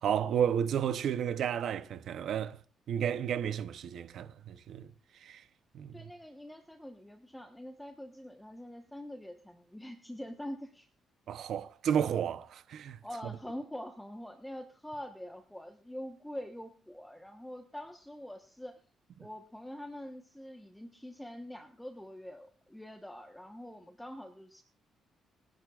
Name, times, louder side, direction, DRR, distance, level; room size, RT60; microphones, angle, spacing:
voice 1, 0.0-2.6 2.9-5.4 5.7-6.0 11.3-13.0, right 8 dB, 70° right, 0.8 m, -32 dB
voice 2, 5.9-10.9 13.0-18.8 19.2-24.6, left 1 dB, 5° left, 1.2 m, -45 dB
29.0 x 11.0 x 2.5 m
cardioid pair, 90°, 0 cm